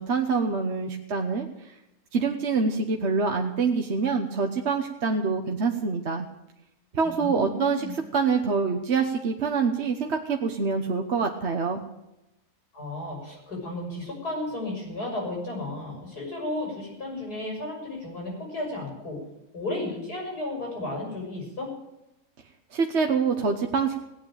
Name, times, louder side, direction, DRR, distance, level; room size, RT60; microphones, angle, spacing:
voice 1, 0.0-1.5 2.1-6.3 6.9-7.9 8.1-11.8 22.7-24.0, right 5 dB, 50° right, 3 dB, 1.3 m, -25 dB
voice 2, 7.0-7.9 12.7-19.2 19.5-21.7, left 2 dB, 80° left, -1 dB, 7.1 m, -33 dB
17.5 x 8.8 x 8.9 m, 0.90 s
omnidirectional pair, 1.6 m